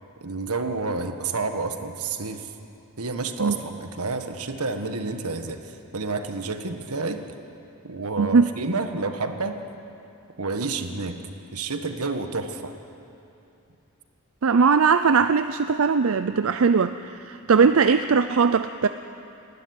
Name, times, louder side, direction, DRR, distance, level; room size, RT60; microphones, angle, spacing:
voice 1, 0.2-2.5 3.0-7.4 7.8-9.6 10.4-11.2 11.5-12.8, right 3 dB, 85° right, 7 dB, 1.5 m, -29 dB
voice 2, 8.2-8.5 14.4-18.9, right 5 dB, 65° right, 10 dB, 0.5 m, -20 dB
29.0 x 12.5 x 9.6 m, 2.8 s
head